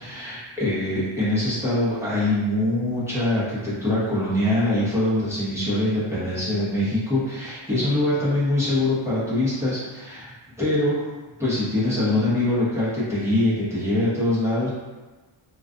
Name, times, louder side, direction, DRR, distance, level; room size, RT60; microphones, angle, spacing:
voice 1, 0.0-11.1 11.4-14.7, left 1 dB, 5° right, -10 dB, 0.8 m, -23 dB
2.3 x 2.3 x 2.5 m, 1.2 s
wide cardioid pair, 135°, 49 cm